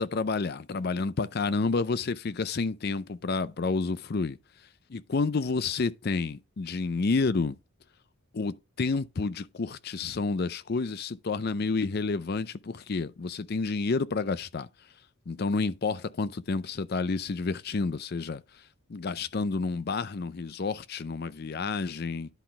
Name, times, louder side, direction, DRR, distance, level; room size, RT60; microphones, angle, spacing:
voice 1, 0.0-4.4 4.9-7.6 8.3-14.7 15.3-18.4 18.9-22.3, left 4 dB, 45° left, 0.4 m, -30 dB
10.5 x 4.0 x 4.3 m
head